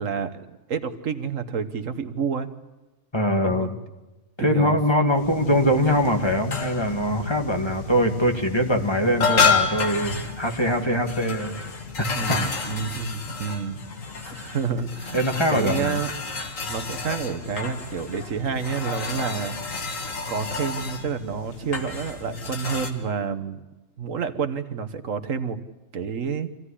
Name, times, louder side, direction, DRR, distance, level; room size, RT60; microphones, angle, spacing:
voice 1, 0.0-2.5 3.4-3.7 4.4-4.8 12.1-13.8 14.2-16.1 16.7-19.9 20.3-23.6 24.0-25.6 25.9-26.5, right 6 dB, 70° right, 10 dB, 1.5 m, -29 dB
voice 2, 3.1-3.8 4.4-11.6 12.0-12.4 15.1-16.0, equal, 20° left, 3 dB, 2.0 m, -23 dB
sound 1, 5.1-22.9, left 5 dB, 75° left, 2.4 m, -30 dB
25.5 x 16.5 x 9.9 m, 1.1 s
omnidirectional pair, 1.4 m